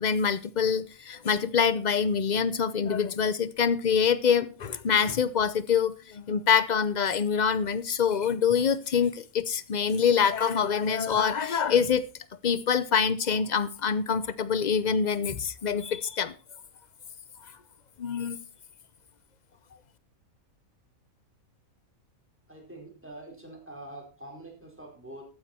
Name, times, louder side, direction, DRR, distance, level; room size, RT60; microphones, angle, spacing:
voice 1, 0.0-12.0 12.4-16.3 18.0-18.4, left 6 dB, 45° left, 0.6 m, -25 dB
voice 2, 22.5-25.2, right 1 dB, 10° right, 4.6 m, -45 dB
14.0 x 9.5 x 4.3 m
omnidirectional pair, 1.5 m